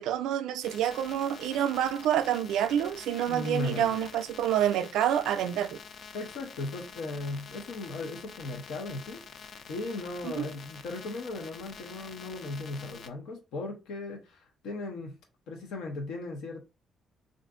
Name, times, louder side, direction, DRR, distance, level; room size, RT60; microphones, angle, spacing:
voice 1, 0.0-5.8 10.2-10.5, right 10 dB, 90° right, 0.3 m, -28 dB
sound 1, 0.6-13.1, left 6 dB, 55° left, 0.4 m, -47 dB
voice 2, 3.3-3.9 6.1-9.2 9.7-15.1 15.5-16.6, left 2 dB, 90° left, 0.7 m, -37 dB
2.5 x 2.5 x 3.5 m
cardioid pair, 90°, 0 cm